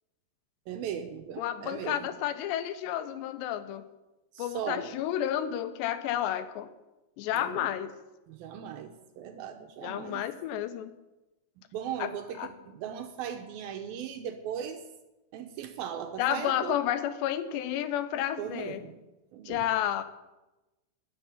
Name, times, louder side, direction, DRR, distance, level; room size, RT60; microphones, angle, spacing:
voice 1, 0.7-2.1 4.3-4.9 7.3-7.7 8.3-10.2 11.6-14.8 15.3-16.8 18.4-19.0 19.3-19.7, right 9 dB, 75° right, 6 dB, 2.3 m, -38 dB
voice 2, 1.4-3.9 4.4-6.7 7.2-7.9 9.8-10.9 12.0-12.1 12.4-12.5 16.2-18.9 19.5-20.0, left 11 dB, 85° left, 11 dB, 3.1 m, -31 dB
12.5 x 6.9 x 9.5 m, 1.0 s
omnidirectional pair, 4.9 m